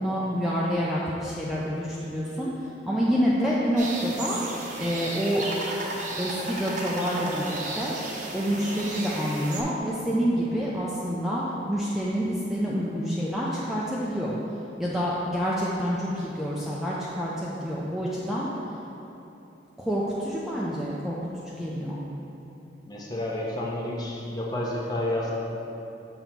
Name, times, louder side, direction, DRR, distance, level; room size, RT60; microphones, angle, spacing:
voice 1, 0.0-2.5 2.9-5.4 6.2-8.0 8.3-14.3 14.8-18.5 19.8-22.0, equal, ahead, -7 dB, 0.4 m, -28 dB
sound 1, 3.8-9.6, right 2 dB, 45° right, 0.7 m, -34 dB
voice 2, 22.9-25.3, left 1 dB, 20° left, -4 dB, 0.8 m, -30 dB
6.9 x 3.0 x 5.8 m, 3.0 s
head